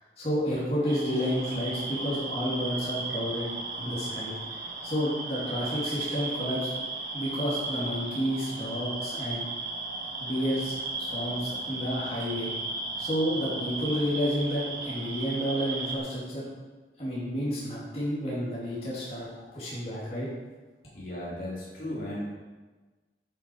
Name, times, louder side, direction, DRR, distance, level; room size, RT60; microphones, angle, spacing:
voice 1, 0.2-3.5 3.8-4.3 4.8-6.7 7.1-9.5 10.2-10.7 11.0-12.5 13.0-16.5 17.0-20.3, equal, 35° left, -9 dB, 2.7 m, -30 dB
sound 1, 0.9-16.0, right 3 dB, 55° right, 1.3 m, -35 dB
voice 2, 20.9-22.2, left 1 dB, 50° left, -7 dB, 2.8 m, -35 dB
8.2 x 8.1 x 4.7 m, 1.3 s
head